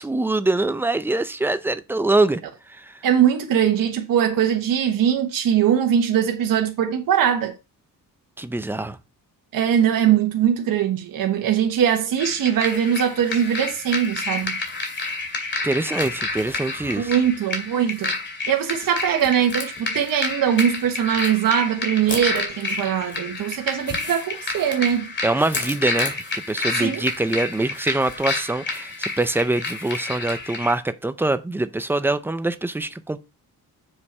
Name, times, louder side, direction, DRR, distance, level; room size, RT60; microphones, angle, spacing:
voice 1, 0.0-2.4 2.7-3.0 8.4-9.0 15.6-17.1 25.2-33.2, right 2 dB, 5° right, 0.4 m, -24 dB
voice 2, 3.0-7.5 9.5-14.6 17.0-18.2 18.5-25.1 26.7-27.0, right 9 dB, 65° right, 1.2 m, -21 dB
sound 1, 12.2-30.7, left 3 dB, 30° left, 2.4 m, -29 dB
7.1 x 6.7 x 4.2 m
wide cardioid pair, 175°, 36 cm